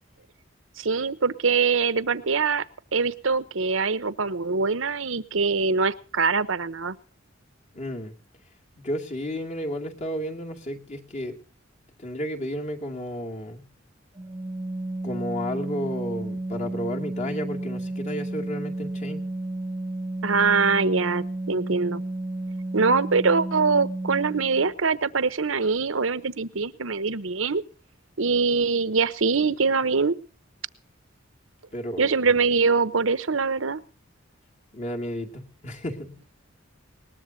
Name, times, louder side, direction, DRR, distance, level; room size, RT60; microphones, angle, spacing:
voice 1, 0.8-2.6 2.9-7.0 20.2-22.0 22.7-27.6 28.2-30.2 32.0-33.8, right 4 dB, 85° right, 14 dB, 0.9 m, -23 dB
voice 2, 7.7-8.1 8.8-11.4 12.0-13.6 15.0-19.2 31.7-32.4 34.7-36.2, equal, 40° left, 2 dB, 2.5 m, -32 dB
Organ, 14.2-24.7, right 1 dB, 20° right, 0.9 m, -32 dB
21.0 x 19.5 x 2.8 m, 0.39 s
head